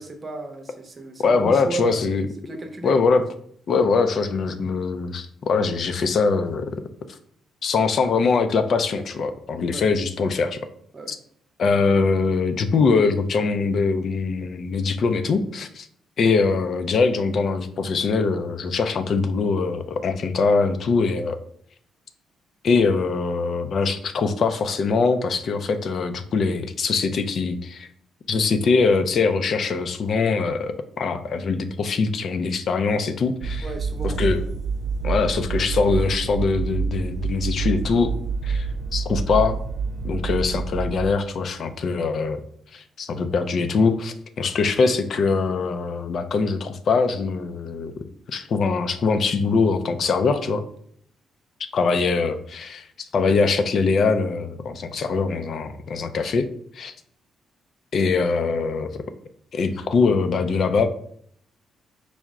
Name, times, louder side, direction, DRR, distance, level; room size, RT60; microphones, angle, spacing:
voice 1, 0.0-2.1 2.4-2.9 9.7-9.8 10.9-11.1 33.6-34.5, right 2 dB, 35° right, 4 dB, 0.7 m, -34 dB
voice 2, 1.2-2.2 2.8-3.2 3.7-6.8 7.6-10.6 11.1-11.2 11.6-15.9 16.2-21.4 22.6-27.9 28.3-33.7 34.0-34.4 35.0-38.1 38.4-38.7 38.9-39.6 40.0-42.4 42.7-47.9 48.3-50.6 51.7-56.5 56.7-56.9 57.9-59.0 59.5-60.9, left 4 dB, 55° left, 9 dB, 0.4 m, -22 dB
sound 1, 33.4-41.1, right 4 dB, 70° right, 0.3 m, -27 dB
4.6 x 2.1 x 3.6 m, 0.65 s
cardioid pair, 90°, 0 cm